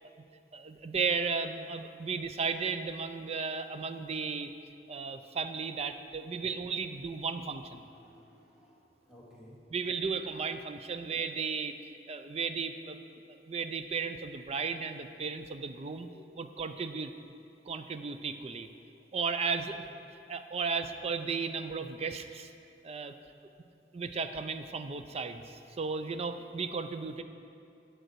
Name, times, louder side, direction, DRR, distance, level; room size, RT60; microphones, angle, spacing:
voice 1, 0.5-4.5 4.9-7.8 9.7-11.7 12.1-13.0 13.4-16.1 16.4-17.1 17.7-18.7 19.1-19.9 20.3-22.5 22.8-23.1 23.9-27.2, right 5 dB, 35° right, 9 dB, 0.4 m, -35 dB
voice 2, 7.8-9.6 16.0-16.1, equal, 5° right, -7 dB, 2.0 m, -57 dB
10.5 x 7.7 x 4.7 m, 2.6 s
head